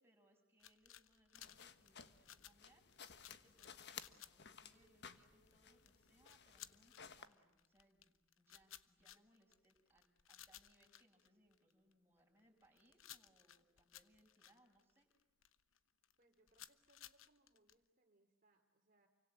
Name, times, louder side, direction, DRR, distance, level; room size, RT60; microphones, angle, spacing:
voice 1, 0.0-15.1, right 1 dB, 10° right, -1 dB, 7.2 m, -74 dB
sound 1, 0.6-11.9 12.4-15.8 16.0-17.7, left 12 dB, 75° left, 1.0 m, -60 dB
sound 2, 1.4-7.3, left 7 dB, 60° left, 1.5 m, -58 dB
voice 2, 16.2-19.1, right 2 dB, 45° right, 2 dB, 2.9 m, -76 dB
29.5 x 24.5 x 7.9 m, 0.99 s
head